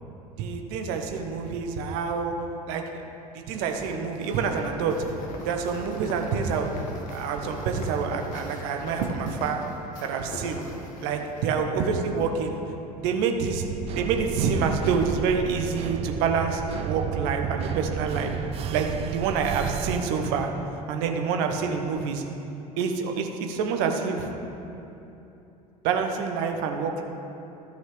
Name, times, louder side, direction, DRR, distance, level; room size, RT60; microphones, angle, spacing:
voice 1, 0.4-2.3 2.7-2.8 3.3-5.1 5.4-6.8 7.1-9.6 10.0-10.6 11.0-12.6 13.0-13.6 13.9-18.4 18.7-20.5 20.9-22.2 22.8-24.3 25.8-27.0, right 5 dB, 55° right, 4 dB, 1.0 m, -27 dB
sound 1, 3.7-11.5, left 1 dB, 40° left, 1.4 m, -41 dB
sound 2, 13.5-20.0, right 9 dB, 30° right, 0.3 m, -33 dB
13.5 x 6.2 x 3.4 m, 2.9 s
figure-of-eight pair, 65°, 19 cm